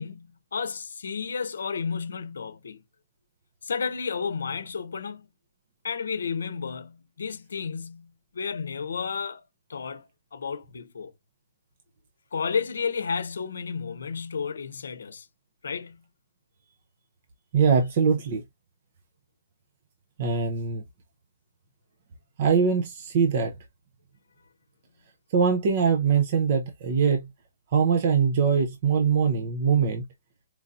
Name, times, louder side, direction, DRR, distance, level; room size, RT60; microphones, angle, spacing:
voice 1, 0.0-2.8 3.6-5.3 5.8-9.4 9.7-11.1 12.3-15.3 15.6-16.0, left 5 dB, 90° left, 0.6 m, -32 dB
voice 2, 17.5-18.4 20.2-20.8 22.4-23.5 25.3-27.3 27.7-30.0, right 6 dB, 40° right, 0.6 m, -22 dB
4.5 x 2.7 x 2.4 m
hypercardioid pair, 170°, 0 cm